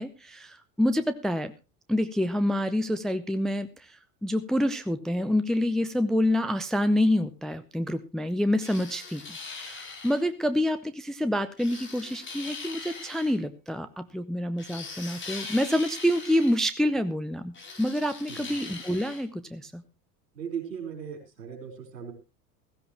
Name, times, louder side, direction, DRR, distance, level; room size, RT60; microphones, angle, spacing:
voice 1, 0.0-1.5 1.9-19.8, left 1 dB, ahead, 12 dB, 0.6 m, -27 dB
sound 1, 8.6-10.3 11.6-13.4 14.6-16.6 17.5-19.2, left 4 dB, 25° left, 4.5 m, -41 dB
voice 2, 20.3-22.1, right 7 dB, 70° right, 5 dB, 4.4 m, -37 dB
16.0 x 15.5 x 3.0 m, 0.28 s
figure-of-eight pair, 75°, 49 cm